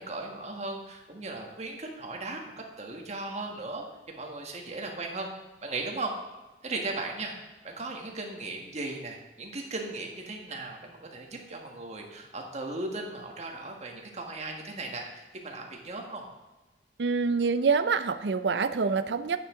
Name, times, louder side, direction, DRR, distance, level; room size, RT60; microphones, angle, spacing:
voice 1, 0.0-2.4 2.8-5.3 5.6-6.1 6.6-7.3 7.6-16.2, right 2 dB, 40° right, 1 dB, 1.5 m, -37 dB
voice 2, 17.0-19.4, right 5 dB, 75° right, 11 dB, 0.5 m, -26 dB
10.0 x 8.5 x 3.7 m, 1.1 s
head